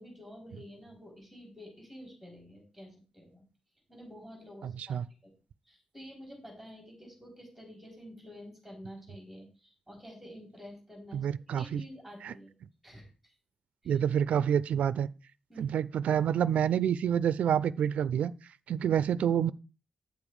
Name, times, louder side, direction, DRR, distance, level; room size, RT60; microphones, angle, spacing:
voice 1, 0.0-3.4 3.9-5.3 5.7-12.5 12.8-13.3 13.8-14.0 15.5-15.7, equal, ahead, 4.5 m, -49 dB
voice 2, 11.1-11.8 12.2-12.3 13.9-15.1 15.6-18.3 18.7-19.5, right 9 dB, 70° right, 0.4 m, -28 dB
9.3 x 7.1 x 4.8 m
wide cardioid pair, 170°, 2 cm